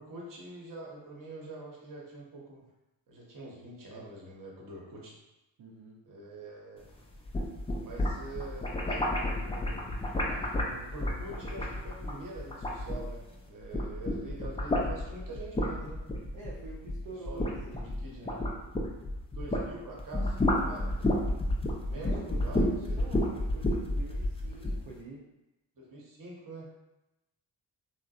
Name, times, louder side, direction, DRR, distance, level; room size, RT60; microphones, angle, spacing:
voice 1, 0.0-2.6 3.1-5.2 6.0-6.9 7.8-10.0 10.3-16.0 17.3-18.3 19.3-21.4 21.7-23.0 25.8-26.7, right 2 dB, 40° right, -3 dB, 0.9 m, -45 dB
voice 2, 5.6-6.0 16.3-18.5 21.9-25.2, right 2 dB, 60° right, -5 dB, 0.6 m, -46 dB
sound 1, 7.1-13.3 13.6-19.7 20.0-24.8, left 1 dB, 15° left, 0.4 m, -30 dB
2.5 x 2.0 x 2.3 m, 0.95 s
supercardioid pair, 40°, 48 cm